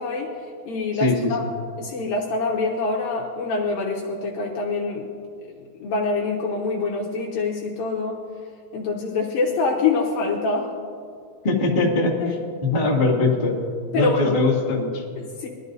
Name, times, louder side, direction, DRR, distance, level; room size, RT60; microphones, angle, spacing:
voice 1, 0.0-1.5 1.8-5.1 5.5-8.2 8.7-10.7 12.2-12.3 13.9-14.4 15.2-15.5, left 3 dB, 70° left, -2 dB, 2.3 m, -25 dB
voice 2, 0.9-1.3 11.4-12.1 12.7-13.5 13.9-15.0, left 2 dB, 40° left, -6 dB, 0.7 m, -21 dB
21.5 x 13.0 x 2.7 m, 2.2 s
omnidirectional pair, 5.3 m